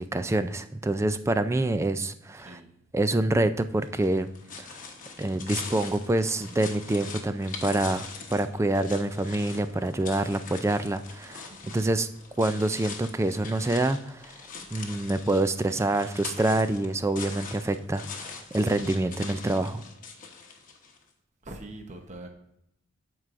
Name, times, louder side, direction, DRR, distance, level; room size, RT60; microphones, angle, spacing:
voice 1, 0.0-2.6 2.9-4.3 4.6-4.8 5.2-12.1 12.4-14.4 14.7-19.8, right 2 dB, 15° right, 11 dB, 0.3 m, -26 dB
voice 2, 2.4-2.7 11.5-12.0 21.4-22.3, right 2 dB, 35° right, 3 dB, 0.9 m, -43 dB
sound 1, 3.8-21.0, left 5 dB, 40° left, 1.0 m, -42 dB
13.0 x 4.7 x 2.5 m, 0.77 s
head